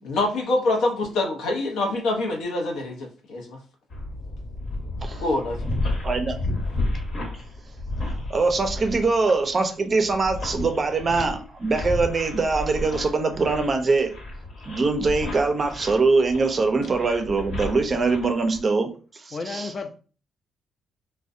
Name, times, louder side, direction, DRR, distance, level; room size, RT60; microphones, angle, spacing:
voice 1, 0.0-3.6 5.2-5.7, left 2 dB, 85° left, 0.6 m, -25 dB
sound 1, 3.9-18.6, left 2 dB, 65° left, 1.0 m, -32 dB
voice 2, 6.0-6.4 8.3-14.1 14.7-18.9 19.3-19.7, right 3 dB, 35° right, 0.4 m, -23 dB
voice 3, 19.3-19.9, left 4 dB, 40° left, 0.4 m, -32 dB
2.5 x 2.1 x 2.4 m
cardioid pair, 90°, 0 cm